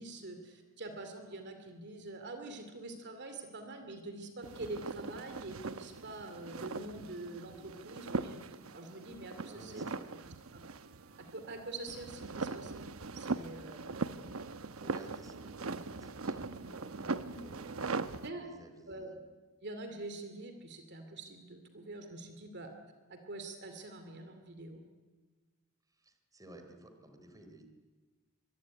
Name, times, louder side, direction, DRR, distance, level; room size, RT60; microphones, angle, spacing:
voice 1, 0.0-8.4 8.7-9.8 10.5-10.6 11.2-14.2 17.2-17.4 18.2-18.5 18.9-19.2 19.6-22.7 23.1-24.8, right 2 dB, 55° right, 6 dB, 2.6 m, -45 dB
sound 1, 4.4-18.3, right 3 dB, 70° right, 1.0 m, -40 dB
voice 2, 9.4-10.1 14.8-19.2 25.9-27.7, right 1 dB, 15° right, 5 dB, 3.8 m, -54 dB
23.5 x 23.5 x 9.7 m, 1.4 s
head